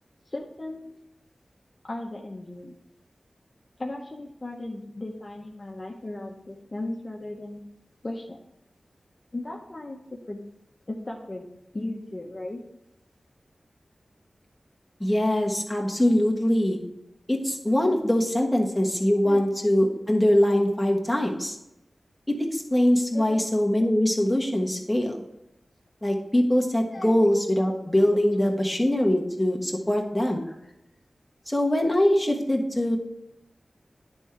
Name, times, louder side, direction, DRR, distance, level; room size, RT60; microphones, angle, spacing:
voice 1, 0.3-0.9 1.8-2.7 3.8-7.6 8.0-8.4 9.3-10.4 10.9-11.5 11.7-12.6 18.4-18.5 19.2-19.4 23.1-23.9 26.9-27.1 30.4-30.5, left 2 dB, 40° left, 0 dB, 0.8 m, -36 dB
voice 2, 15.0-16.8 17.3-21.6 22.3-25.2 26.0-30.4 31.5-33.0, left 1 dB, 10° left, 0 dB, 1.3 m, -23 dB
10.0 x 3.6 x 4.5 m, 0.86 s
wide cardioid pair, 60°, 0 cm